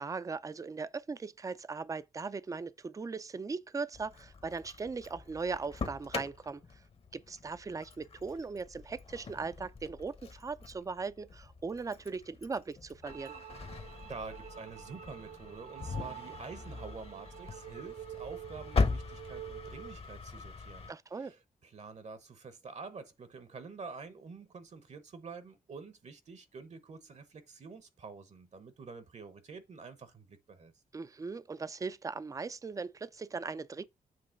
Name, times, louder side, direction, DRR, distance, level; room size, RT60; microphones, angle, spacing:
voice 1, 0.0-6.8 7.1-13.4 20.9-21.3 30.9-33.8, right 4 dB, 20° right, 0.5 m, -39 dB
Engine starting, 3.9-20.9, left 4 dB, 40° left, 1.0 m, -40 dB
sound 1, 13.0-20.0, right 12 dB, 85° right, 0.5 m, -48 dB
voice 2, 14.0-30.7, right 4 dB, 50° right, 1.0 m, -48 dB
7.7 x 3.0 x 5.7 m
cardioid pair, 100°, 15 cm